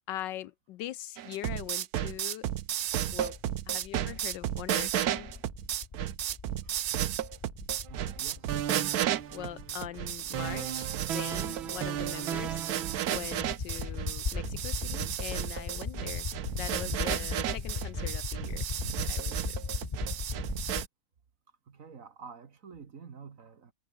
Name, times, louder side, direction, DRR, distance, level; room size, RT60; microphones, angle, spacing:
voice 1, 0.1-2.5 3.1-3.4 3.7-5.3 9.3-12.6 13.1-18.7 19.0-19.6, left 13 dB, 75° left, 1.2 m, -42 dB
sound 1, 1.2-20.9, right 12 dB, 60° right, 1.1 m, -33 dB
sound 2, 2.9-20.9, left 5 dB, 35° left, 0.7 m, -39 dB
sound 3, 7.8-8.2 8.5-9.9 10.3-13.5, right 10 dB, 90° right, 2.0 m, -37 dB
voice 2, 7.9-8.6 21.7-23.7, right 6 dB, 45° right, 1.7 m, -49 dB
omnidirectional pair, 2.1 m